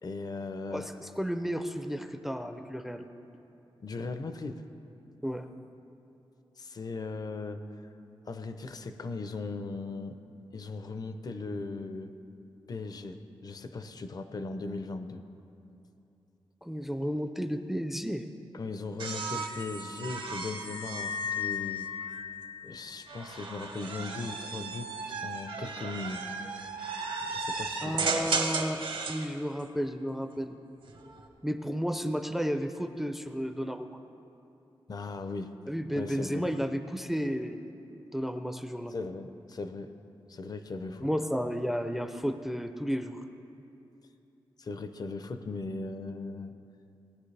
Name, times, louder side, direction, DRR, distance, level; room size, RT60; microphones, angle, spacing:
voice 1, 0.0-0.9 3.8-4.7 6.6-7.7 8.3-10.2 10.5-12.1 12.7-15.2 18.5-21.9 22.6-24.9 25.2-26.4 27.3-28.1 34.9-35.5 35.9-36.5 38.9-39.9 40.3-41.1 44.6-46.5, left 3 dB, 45° left, 9 dB, 0.6 m, -38 dB
voice 2, 0.7-3.1 5.2-5.5 16.6-18.3 27.8-28.8 29.1-30.6 31.4-34.0 35.7-37.6 38.1-38.9 41.0-43.2, equal, 5° right, 8 dB, 0.4 m, -32 dB
sound 1, 19.0-22.3 23.1-29.3 30.7-31.3, right 4 dB, 75° right, 1.1 m, -35 dB
sound 2, 20.6-23.3, left 8 dB, 90° left, 0.4 m, -36 dB
18.5 x 9.9 x 3.3 m, 2.8 s
wide cardioid pair, 110°, 9 cm